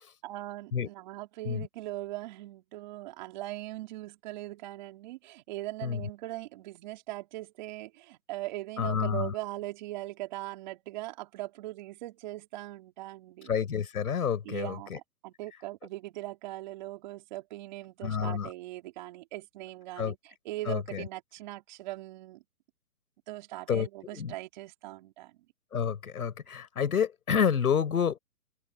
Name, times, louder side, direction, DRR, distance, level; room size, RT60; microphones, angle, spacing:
voice 1, 0.2-13.5 14.4-22.4 23.3-25.4, right 17 dB, 30° right, 3.7 m, -40 dB
voice 2, 8.8-9.3 13.5-15.0 18.0-18.5 20.0-20.1 20.7-21.1 23.7-23.9 24.1-24.3 25.7-28.2, left 7 dB, 75° left, 5.3 m, -29 dB
hypercardioid pair, 165°, 44 cm